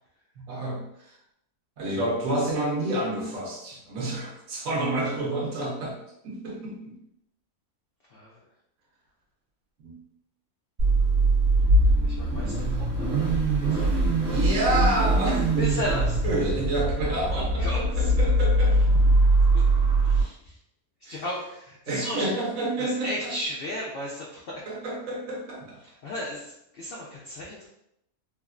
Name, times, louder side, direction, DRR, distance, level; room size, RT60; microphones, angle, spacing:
voice 1, 0.4-1.2 1.8-6.0 6.2-7.0 9.8-10.0 13.7-13.9 14.2-15.8 16.2-18.9 21.0-21.2 21.9-23.3 24.7-25.8, right 1 dB, 65° right, -2 dB, 1.1 m, -29 dB
voice 2, 8.1-8.5 11.5-13.1 13.5-14.0 15.6-16.2 17.3-18.3 19.5-19.6 20.0-20.6 21.0-22.3 22.8-24.7 25.8-27.7, equal, 80° left, -4 dB, 0.5 m, -35 dB
Car / Idling / Accelerating revving vroom, 10.8-20.2, right 2 dB, 45° right, 1.0 m, -22 dB
3.5 x 2.1 x 2.3 m, 0.79 s
omnidirectional pair, 1.6 m